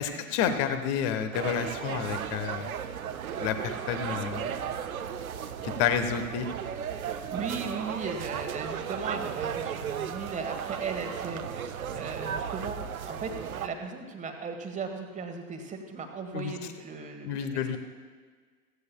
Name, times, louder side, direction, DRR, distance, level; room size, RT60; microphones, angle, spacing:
voice 1, 0.0-2.8 3.4-4.8 5.6-6.5 16.3-16.5 17.2-17.8, left 8 dB, 40° left, 9 dB, 1.2 m, -30 dB
sound 1, 1.3-13.7, right 8 dB, 70° right, 0.8 m, -35 dB
voice 2, 7.0-13.3 13.6-17.8, right 4 dB, 15° right, 5 dB, 1.4 m, -37 dB
16.5 x 15.5 x 2.3 m, 1.5 s
figure-of-eight pair, 90°, 44 cm